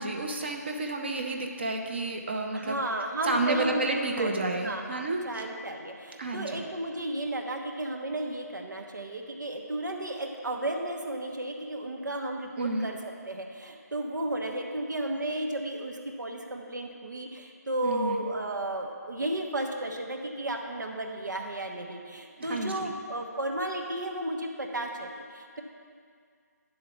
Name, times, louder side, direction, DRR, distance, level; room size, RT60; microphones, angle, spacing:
voice 1, 0.0-2.8 3.2-5.2 6.2-6.6 12.6-12.9 17.8-18.2 22.4-22.9, right 2 dB, 35° right, 2 dB, 0.7 m, -30 dB
voice 2, 2.5-4.3 4.6-13.0 13.3-25.6, right 1 dB, 90° right, 2 dB, 1.3 m, -33 dB
10.5 x 3.9 x 6.9 m, 2.1 s
figure-of-eight pair, 170°, 10 cm